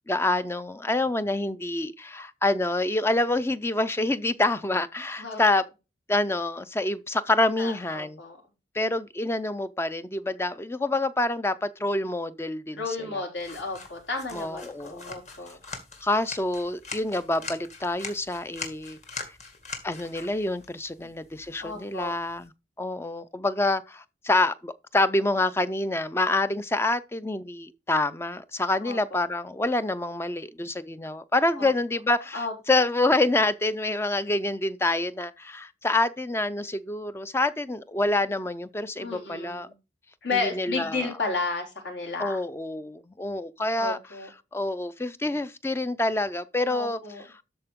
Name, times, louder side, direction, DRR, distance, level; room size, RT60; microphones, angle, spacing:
voice 1, 0.1-5.6 6.1-8.2 8.7-13.2 14.3-15.2 16.0-19.3 19.8-22.5 22.8-39.7 40.3-41.1 42.2-44.0 44.5-47.0, left 2 dB, 15° left, 0.4 m, -27 dB
voice 2, 7.6-8.4 12.7-15.6 21.0-21.1 21.6-22.1 28.8-29.2 31.6-31.7 32.3-32.5 39.0-39.7 40.2-42.4 43.8-44.3 46.7-47.2, left 3 dB, 70° left, 3.6 m, -33 dB
sound 1, 13.4-22.5, left 4 dB, 35° left, 2.0 m, -42 dB
12.5 x 4.4 x 3.6 m
head